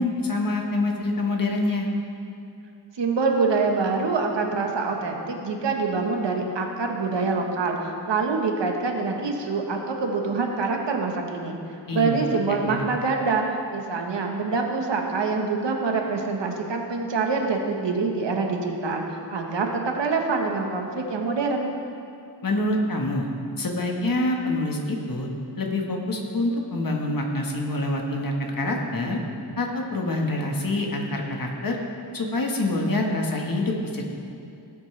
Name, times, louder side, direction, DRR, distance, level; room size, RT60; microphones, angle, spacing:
voice 1, 0.0-1.9 11.9-12.2 12.7-12.8 22.4-23.3 23.6-25.3 25.6-29.2 29.6-31.8 32.1-34.0, left 2 dB, 50° left, 1 dB, 1.4 m, -26 dB
voice 2, 2.9-11.6 11.9-13.4 13.7-21.7, right 4 dB, 70° right, 2 dB, 1.3 m, -25 dB
17.5 x 8.4 x 3.3 m, 2.6 s
wide cardioid pair, 135°, 45 cm